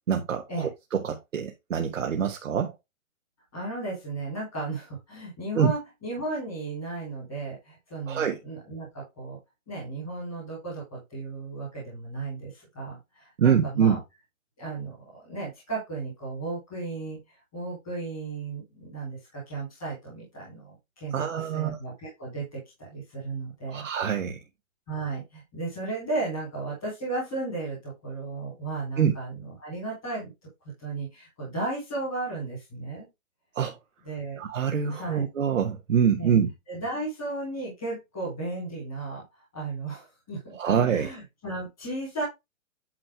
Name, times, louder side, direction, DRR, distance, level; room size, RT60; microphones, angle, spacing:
voice 1, 0.1-2.7 5.5-5.7 8.1-8.4 13.4-14.0 21.1-21.8 23.7-24.4 29.0-29.1 33.5-33.8 34.4-36.5 40.6-41.1, right 7 dB, 70° right, 1.2 m, -25 dB
voice 2, 3.5-9.4 9.7-14.0 14.6-17.2 17.5-23.9 24.9-30.3 30.8-33.1 34.0-34.4 34.9-35.2 36.2-36.3 36.7-39.2 39.5-42.2, right 3 dB, ahead, 0.6 m, -35 dB
8.6 x 3.1 x 4.7 m
hypercardioid pair, 180°, 40 cm